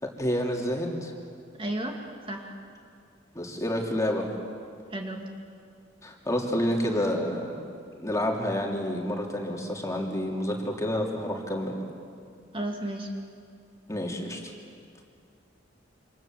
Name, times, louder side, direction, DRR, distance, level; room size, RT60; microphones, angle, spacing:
voice 1, 0.0-1.1 3.3-4.3 6.0-7.6 8.0-11.9 13.9-14.4, equal, 15° left, 0 dB, 3.1 m, -29 dB
voice 2, 1.5-2.5 4.9-5.3 12.5-13.1, right 1 dB, 30° right, 1 dB, 2.6 m, -33 dB
28.5 x 26.5 x 7.7 m, 2.3 s
head